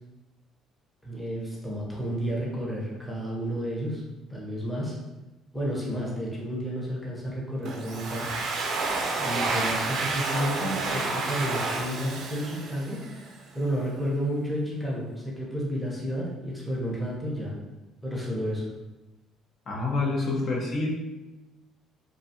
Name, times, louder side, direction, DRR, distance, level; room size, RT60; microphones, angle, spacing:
voice 1, 1.0-4.0 4.3-5.0 5.5-8.2 9.2-13.0 13.5-17.5 18.0-18.7, equal, 5° left, -5 dB, 0.7 m, -31 dB
Domestic sounds home sounds, 7.7-13.3, right 3 dB, 60° right, 0.4 m, -30 dB
voice 2, 19.7-20.9, left 3 dB, 50° left, -3 dB, 0.5 m, -27 dB
2.4 x 2.3 x 2.7 m, 1.1 s
cardioid pair, 105°, 0 cm